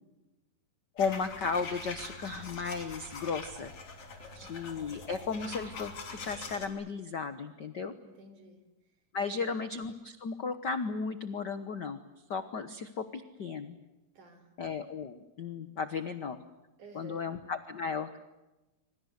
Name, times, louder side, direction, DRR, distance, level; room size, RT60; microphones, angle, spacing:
voice 1, 1.0-3.7 4.3-7.9 9.1-12.0 12.3-13.8 14.6-16.4 16.9-18.2, left 5 dB, 70° left, 11 dB, 1.0 m, -35 dB
sound 1, 1.0-6.7, left 4 dB, 45° left, 3.9 m, -44 dB
voice 2, 4.1-4.6 8.0-8.6 9.2-9.6 14.2-14.5 16.8-17.3, right 3 dB, 70° right, 8 dB, 5.4 m, -52 dB
26.5 x 26.0 x 8.1 m, 1.0 s
omnidirectional pair, 3.7 m